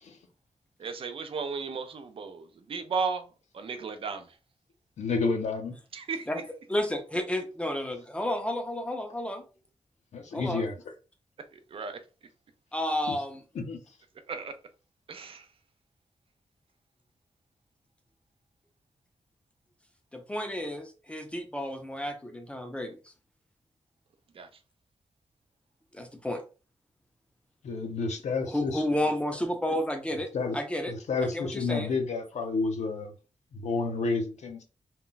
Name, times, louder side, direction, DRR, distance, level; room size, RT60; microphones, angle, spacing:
voice 1, 0.8-3.2 3.5-4.4 5.9-6.3 11.5-12.0 14.3-14.5 15.1-15.5 24.3-24.5, right 5 dB, 50° right, 0.4 m, -34 dB
voice 2, 5.0-5.7 10.1-10.8 13.1-13.2 13.5-13.8 27.6-28.8 30.3-30.6 30.9-33.1 33.5-34.6, left 4 dB, 75° left, 0.7 m, -30 dB
voice 3, 6.7-9.5 10.3-10.6 12.7-13.4 20.1-23.0 25.9-26.4 28.5-30.3 30.5-30.9 31.3-31.9, left 1 dB, 10° left, 0.5 m, -31 dB
2.2 x 2.2 x 3.8 m
wide cardioid pair, 155°, 12 cm